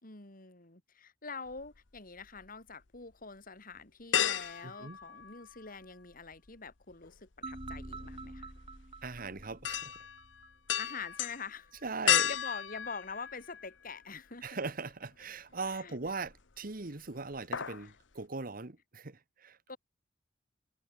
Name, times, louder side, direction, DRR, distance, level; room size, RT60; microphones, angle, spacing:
voice 1, 0.0-8.5 10.8-11.7 12.2-14.6 15.7-16.0 17.8-17.9 19.7-19.8, left 4 dB, 50° left, 3.4 m, -45 dB
sound 1, 1.5-2.5 2.9-3.0 4.1-5.8 6.1-14.0 14.4-14.5 16.0-16.6 16.9-17.1 17.3-17.9 18.2-18.3, left 10 dB, 90° left, 1.1 m, -34 dB
voice 2, 4.6-5.0 9.0-10.0 11.8-12.3 14.4-19.7, right 3 dB, 50° right, 1.4 m, -40 dB
sound 2, 7.4-10.5, right 2 dB, 30° right, 4.2 m, -46 dB
head